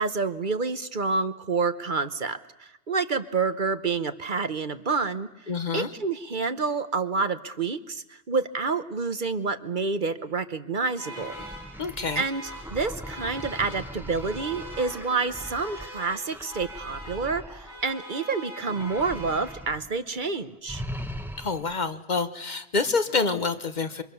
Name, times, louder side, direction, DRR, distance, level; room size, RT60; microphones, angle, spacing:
voice 1, 0.0-11.3 12.1-20.8, right 4 dB, 50° right, 11 dB, 1.2 m, -28 dB
voice 2, 5.5-5.9 11.8-12.2 21.4-24.0, left 4 dB, 45° left, 10 dB, 1.1 m, -27 dB
sound 1, 10.9-20.0, equal, 85° left, 5.8 m, -43 dB
sound 2, 11.0-18.2 18.6-19.9 20.1-20.3 20.7-21.8, equal, ahead, 1.3 m, -40 dB
27.0 x 24.5 x 7.0 m, 0.94 s
omnidirectional pair, 1.1 m